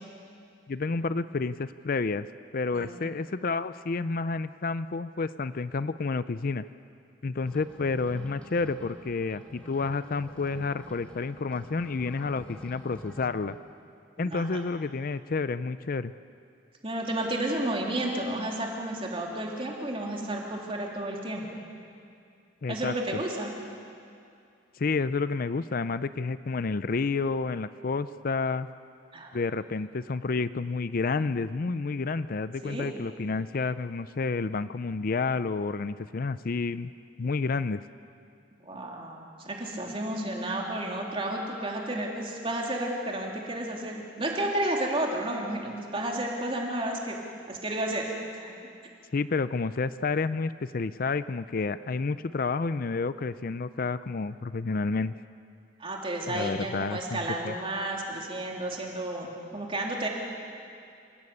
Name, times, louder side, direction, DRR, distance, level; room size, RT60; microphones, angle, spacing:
voice 1, 0.7-2.3 2.5-6.7 7.2-13.6 14.2-16.1 22.6-22.9 24.8-28.7 29.3-36.9 37.2-37.8 49.1-55.1 56.3-57.5, left 4 dB, 50° left, 14 dB, 0.5 m, -30 dB
voice 2, 2.7-3.1 14.2-14.5 16.8-21.4 22.7-23.5 29.1-29.4 32.6-32.9 38.6-47.2 47.5-48.5 55.8-60.1, right 1 dB, 30° right, -1 dB, 3.4 m, -32 dB
sound 1, 7.4-13.6, equal, 5° left, 3.0 m, -48 dB
27.0 x 17.5 x 8.6 m, 2.4 s
head